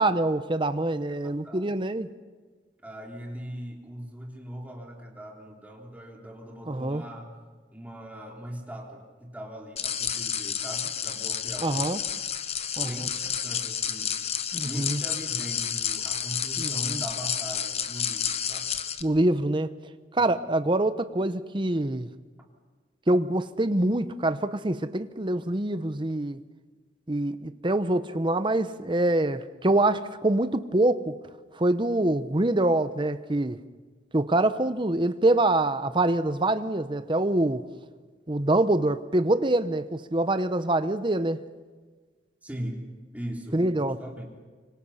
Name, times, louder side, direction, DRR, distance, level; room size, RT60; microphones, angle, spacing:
voice 1, 0.0-2.1 6.7-7.0 11.6-12.0 12.8-13.1 14.5-15.0 16.6-17.0 19.0-19.7 20.1-22.1 23.1-26.4 27.1-31.1 31.6-33.6 34.1-37.6 38.3-41.4 43.5-44.0, right 1 dB, 25° right, 0.8 m, -25 dB
voice 2, 0.9-1.6 2.8-7.2 7.7-12.0 12.8-14.2 14.6-18.8 20.2-20.3 42.4-42.8 43.1-44.3, equal, 10° right, 3.2 m, -40 dB
sound 1, 9.8-19.0, left 8 dB, 35° left, 0.8 m, -30 dB
25.5 x 25.5 x 5.7 m
head